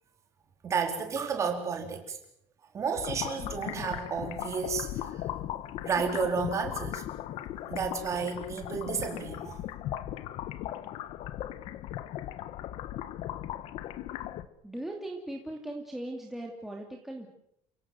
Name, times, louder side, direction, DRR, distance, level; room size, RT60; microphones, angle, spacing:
voice 1, 0.6-2.2 2.7-5.3 5.8-7.0 7.7-9.6, right 5 dB, 25° right, 4 dB, 4.3 m, -32 dB
sound 1, 2.9-14.5, left 12 dB, 55° left, 1.4 m, -38 dB
voice 2, 14.6-17.3, right 1 dB, ahead, 0 dB, 2.7 m, -39 dB
30.0 x 17.5 x 7.9 m, 0.73 s
cardioid pair, 180°, 12 cm